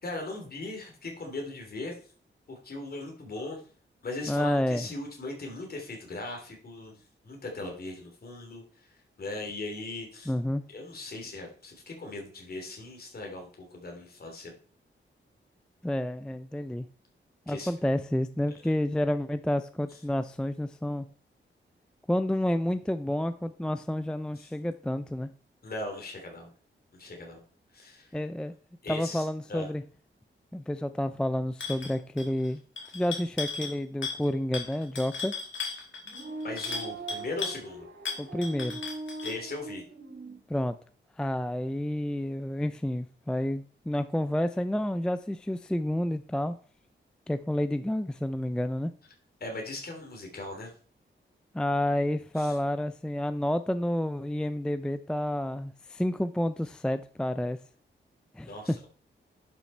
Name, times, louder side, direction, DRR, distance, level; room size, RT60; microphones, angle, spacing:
voice 1, 0.0-1.9 2.5-3.6 4.0-6.9 7.2-8.9 9.2-10.3 10.7-14.6 17.5-17.7 24.3-24.5 25.6-26.5 27.0-27.4 27.7-28.1 28.8-29.7 36.4-37.9 39.2-39.8 49.4-50.7 52.4-52.5 58.5-58.9, left 2 dB, 50° left, 2 dB, 3.0 m, -39 dB
voice 2, 4.3-4.9 10.3-10.6 15.8-16.9 17.5-21.1 22.1-25.3 28.1-28.5 28.9-29.8 30.5-32.6 32.9-35.3 38.2-38.8 40.5-40.8 41.2-46.6 47.3-48.9 51.5-57.6 58.4-58.5, left 1 dB, 5° left, 12 dB, 0.4 m, -29 dB
sound 1, 31.6-31.9 32.2-32.5 32.8-33.8 34.0-34.3 34.5-37.6 38.1-39.4, left 4 dB, 70° left, 2.4 m, -36 dB
sound 2, 36.0-40.4, right 3 dB, 70° right, 2.4 m, -41 dB
10.5 x 5.8 x 4.4 m, 0.42 s
wide cardioid pair, 145°, 20 cm